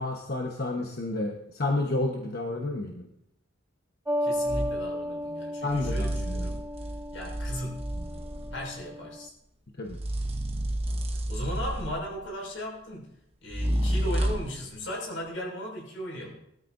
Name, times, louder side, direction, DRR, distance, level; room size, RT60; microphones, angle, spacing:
voice 1, 0.0-3.1 5.6-6.5 9.8-10.0, left 2 dB, 55° left, 1 dB, 1.2 m, -30 dB
sound 1, 4.1-9.3, equal, 10° right, 0.7 m, -34 dB
voice 2, 4.2-6.6 7.1-7.9 8.5-9.3 11.1-13.1 13.4-16.4, equal, 80° left, -2 dB, 6.1 m, -37 dB
sound 2, 4.5-4.8 5.7-8.7 9.9-12.2 13.5-14.6, right 1 dB, 30° right, 1.2 m, -30 dB
20.5 x 13.5 x 2.7 m, 0.77 s
head